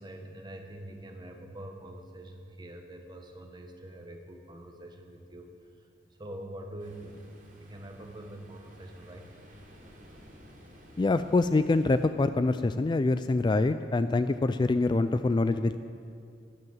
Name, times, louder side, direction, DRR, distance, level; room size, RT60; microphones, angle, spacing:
voice 1, 0.0-5.5 5.8-7.2 7.6-9.3, right 1 dB, 25° right, 4 dB, 1.3 m, -45 dB
Ocean, 6.8-12.0, equal, 50° right, 3.2 m, -54 dB
voice 2, 11.0-15.8, left 3 dB, 25° left, 11 dB, 0.3 m, -25 dB
12.0 x 10.5 x 7.3 m, 2.3 s
head